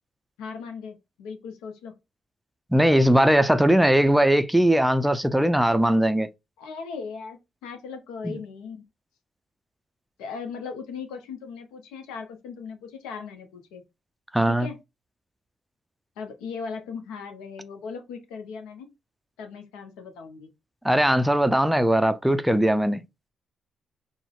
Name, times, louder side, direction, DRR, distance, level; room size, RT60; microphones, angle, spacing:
voice 1, 0.4-1.9 6.6-8.8 10.2-13.8 14.5-14.8 16.2-18.9 19.4-20.5, left 5 dB, 75° left, 0.6 m, -38 dB
voice 2, 2.7-6.3 8.2-8.4 14.3-14.7 20.8-23.0, right 1 dB, 5° right, 0.4 m, -20 dB
3.8 x 2.0 x 2.4 m
hypercardioid pair, 40°, 0 cm